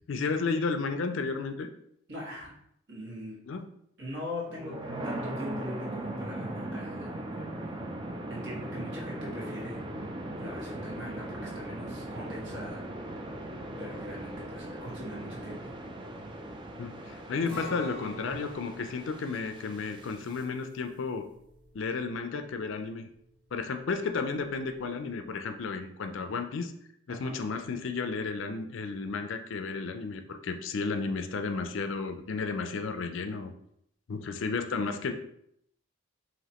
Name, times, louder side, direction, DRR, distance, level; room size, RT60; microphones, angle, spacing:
voice 1, 0.1-1.7 3.5-3.6 16.8-21.3 21.7-23.1 23.5-26.7 27.1-33.5 34.1-35.1, left 4 dB, 65° left, 7 dB, 0.4 m, -33 dB
voice 2, 2.1-2.5 2.9-3.4 4.0-4.7 5.0-7.2 8.3-10.1 10.4-12.9 13.3-13.5 13.8-15.7 27.1-27.4, left 1 dB, 55° right, -5 dB, 1.6 m, -41 dB
sound 1, 4.5-20.4, right 1 dB, 20° right, 0.3 m, -39 dB
Acoustic guitar, 17.5-23.4 23.7-23.8 24.3-24.8, left 1 dB, 5° left, 0.8 m, -47 dB
4.9 x 3.0 x 2.9 m, 0.73 s
head